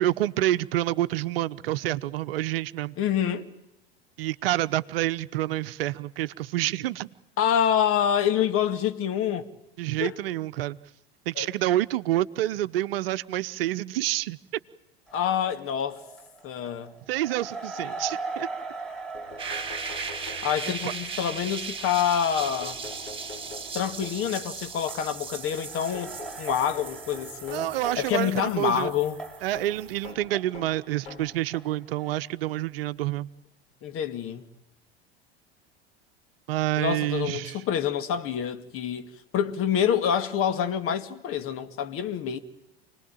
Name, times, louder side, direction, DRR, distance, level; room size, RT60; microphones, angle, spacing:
voice 1, 0.0-3.0 4.2-7.1 9.8-10.8 11.3-14.4 17.1-18.5 20.8-20.9 27.5-28.9 29.4-33.3 36.5-37.6, right 14 dB, 65° right, 0.9 m, -28 dB
voice 2, 3.0-3.5 7.4-9.5 10.0-10.1 11.4-11.5 15.1-16.0 16.4-17.0 20.4-22.8 23.7-26.1 26.4-27.7 28.0-29.2 33.8-34.5 36.8-42.4, left 9 dB, 45° left, 2.3 m, -27 dB
sound 1, 15.1-31.7 31.9-32.2, right 3 dB, 5° left, 5.8 m, -42 dB
sound 2, 18.8-18.9 19.1-20.9 22.4-24.4 25.9-28.1 29.5-31.4 32.3-32.4 33.7-33.8 34.1-34.2, left 3 dB, 70° left, 7.6 m, -44 dB
sound 3, 19.4-30.1, right 5 dB, 15° right, 5.4 m, -38 dB
29.0 x 20.0 x 9.1 m
figure-of-eight pair, 80°, 31 cm